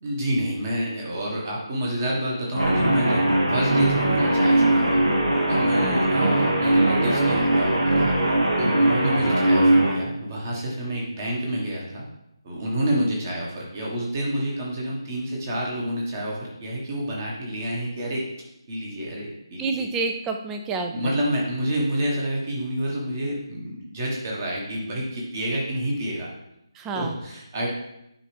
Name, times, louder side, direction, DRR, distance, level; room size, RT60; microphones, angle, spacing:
voice 1, 0.0-5.0 5.5-8.1 8.6-12.1 12.4-18.3 18.7-19.8 20.9-26.3 26.9-27.7, right 1 dB, 30° right, -3 dB, 1.4 m, -28 dB
Guitar, 2.5-10.0, right 1 dB, 75° right, 1.6 m, -20 dB
voice 2, 19.6-21.2 26.7-27.2, right 4 dB, 10° right, 4 dB, 0.4 m, -29 dB
9.6 x 3.4 x 3.4 m, 0.83 s
figure-of-eight pair, 150°, 3 cm